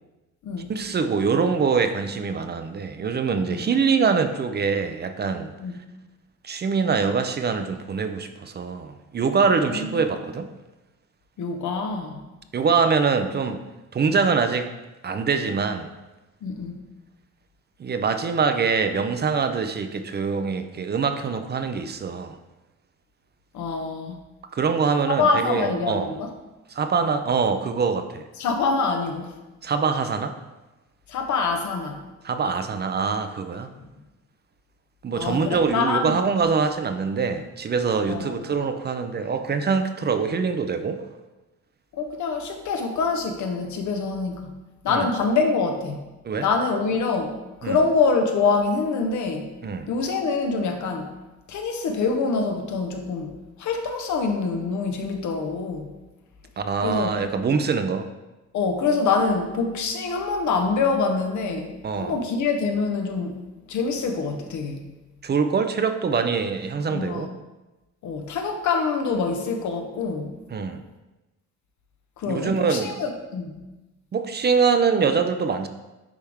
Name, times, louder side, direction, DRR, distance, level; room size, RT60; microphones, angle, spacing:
voice 1, 0.7-5.5 6.4-10.5 12.5-13.6 13.9-14.7 15.0-15.9 17.8-22.4 24.5-26.1 26.7-28.3 29.6-30.4 32.2-33.7 35.0-41.0 44.9-45.1 46.2-46.5 47.6-47.8 49.6-49.9 56.6-58.1 61.8-62.2 65.2-67.3 70.5-70.8 72.3-72.9 74.1-75.7, right 5 dB, 35° right, 8 dB, 0.5 m, -24 dB
voice 2, 9.6-10.0 11.4-12.2 16.4-16.8 23.5-24.2 25.1-26.3 28.4-29.4 31.1-32.0 33.8-33.9 35.1-36.1 38.1-38.4 41.9-44.5 44.8-46.0 46.4-49.5 49.9-51.1 51.5-53.3 53.6-55.9 56.8-57.2 58.5-61.7 62.0-64.8 66.9-67.3 68.0-70.3 72.2-73.5, left 4 dB, 75° left, 4 dB, 1.0 m, -25 dB
10.0 x 3.4 x 3.5 m, 1.1 s
cardioid pair, 90°, 30 cm